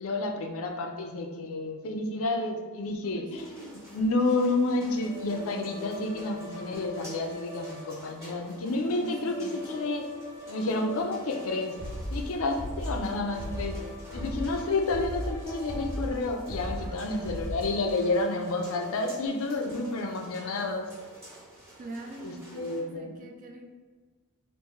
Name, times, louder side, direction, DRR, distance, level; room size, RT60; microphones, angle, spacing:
voice 1, 0.0-10.1 10.5-11.8 12.1-13.8 14.1-20.9 22.2-23.2, left 2 dB, 65° left, 4 dB, 0.4 m, -30 dB
sound 1, 3.3-22.8, right 1 dB, 10° right, 1.0 m, -51 dB
sound 2, 4.2-19.3, left 2 dB, 10° left, 0.6 m, -45 dB
voice 2, 9.0-9.5 16.8-17.0 21.8-23.6, right 2 dB, 35° right, 2 dB, 0.3 m, -43 dB
sound 3, 11.8-17.8, equal, 55° right, 1.0 m, -36 dB
3.5 x 2.5 x 3.0 m, 1.5 s
head